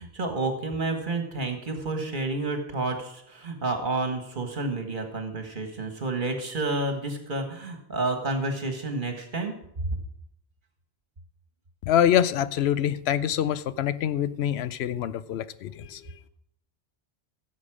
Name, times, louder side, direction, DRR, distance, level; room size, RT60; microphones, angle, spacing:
voice 1, 0.0-9.5, right 2 dB, 50° right, 5 dB, 1.7 m, -30 dB
voice 2, 11.9-16.1, left 10 dB, 85° left, 15 dB, 0.8 m, -25 dB
15.5 x 6.8 x 4.9 m, 0.74 s
omnidirectional pair, 1.0 m